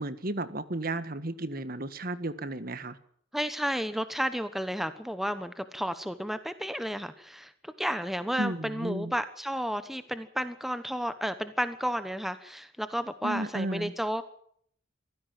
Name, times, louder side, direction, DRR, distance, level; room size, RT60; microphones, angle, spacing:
voice 1, 0.0-3.0 8.4-9.1 13.2-13.9, right 1 dB, 45° right, 13 dB, 1.6 m, -33 dB
voice 2, 3.3-14.2, equal, ahead, 11 dB, 1.0 m, -32 dB
24.0 x 16.0 x 7.5 m, 0.65 s
head